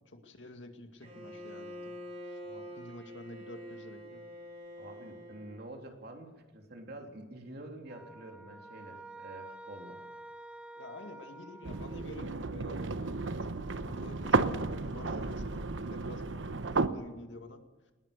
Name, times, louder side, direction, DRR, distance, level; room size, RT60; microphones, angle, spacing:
voice 1, 0.1-1.9 2.2-2.4 2.8-4.3 10.8-17.9, left 1 dB, 75° left, 5 dB, 2.2 m, -49 dB
Bowed string instrument, 1.0-5.8, equal, 35° right, 7.8 m, -46 dB
voice 2, 4.8-10.0, right 1 dB, 55° right, 3 dB, 3.4 m, -48 dB
sound 1, 7.9-12.3, right 2 dB, 5° right, 0.9 m, -49 dB
sound 2, 11.6-16.9, right 3 dB, 85° right, 1.0 m, -33 dB
20.0 x 19.5 x 6.7 m, 1.2 s
head